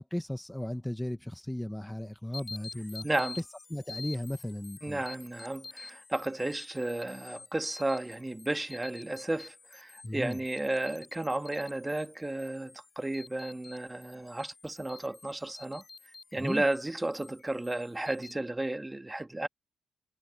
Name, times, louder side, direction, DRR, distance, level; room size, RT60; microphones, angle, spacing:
voice 1, 0.0-3.1 3.3-5.0 10.0-10.4 16.4-16.6, left 1 dB, 5° left, 1.2 m, -36 dB
sound 1, 2.3-18.3, left 4 dB, 35° left, 3.5 m, -49 dB
voice 2, 3.0-3.4 4.8-15.8 16.3-19.5, right 1 dB, 15° right, 1.9 m, -33 dB
cardioid pair, 85°, 0 cm